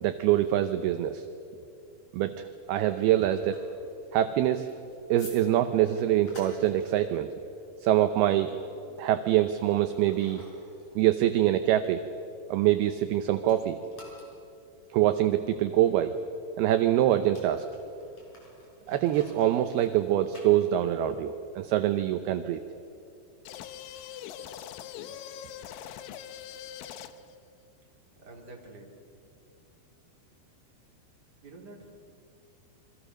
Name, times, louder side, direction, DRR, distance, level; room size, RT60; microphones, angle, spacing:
voice 1, 0.0-1.3 2.1-3.6 4.1-4.7 5.1-7.3 7.8-8.5 9.0-10.4 11.0-12.0 12.5-13.8 14.9-16.1 16.6-17.7 18.9-22.6, right 12 dB, 75° right, 9 dB, 2.4 m, -25 dB
sound 1, 2.9-13.2 13.4-21.1, left 2 dB, 35° left, 6.7 m, -55 dB
sound 2, 23.5-27.4, left 10 dB, 90° left, 3.4 m, -42 dB
voice 2, 28.2-28.9 31.4-31.9, right 2 dB, 25° right, 0 dB, 3.5 m, -47 dB
29.0 x 24.5 x 6.4 m, 2.7 s
omnidirectional pair, 5.2 m